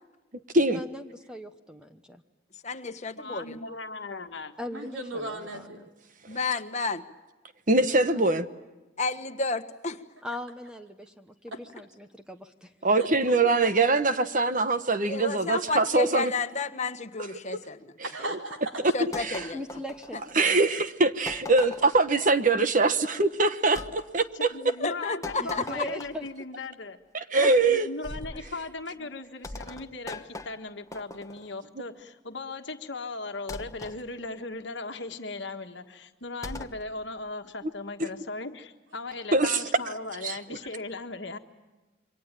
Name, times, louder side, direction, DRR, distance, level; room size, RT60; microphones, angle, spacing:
voice 1, 0.7-2.2 4.6-5.7 8.1-8.3 10.2-12.7 19.5-20.6 25.4-26.3, left 1 dB, 5° right, 7 dB, 1.0 m, -40 dB
voice 2, 2.5-3.6 6.3-7.1 9.0-10.0 13.4-13.5 15.0-17.9 18.9-19.6 20.1-20.2 24.8-25.6 27.4-27.8 28.2-28.4, left 3 dB, 35° left, 7 dB, 1.5 m, -32 dB
voice 3, 3.2-4.5 24.3-27.0 27.3-41.4, left 3 dB, 65° left, 6 dB, 1.5 m, -38 dB
voice 4, 4.7-5.9 11.5-11.6 12.9-13.4 18.0-18.8, right 1 dB, 85° right, 4 dB, 4.3 m, -36 dB
voice 5, 7.7-8.5 12.8-16.3 20.4-22.9 23.2-24.5 27.1-27.9 38.0-38.1 39.3-39.6 40.2-40.4, right 3 dB, 45° right, 10 dB, 1.2 m, -23 dB
sound 1, 19.1-20.5 21.3-22.1 23.7-23.9 25.2-26.3 28.0-28.5 29.4-31.5 33.5-34.0 36.4-36.8, left 2 dB, 15° left, 1.1 m, -40 dB
28.0 x 24.0 x 8.9 m, 1.1 s
head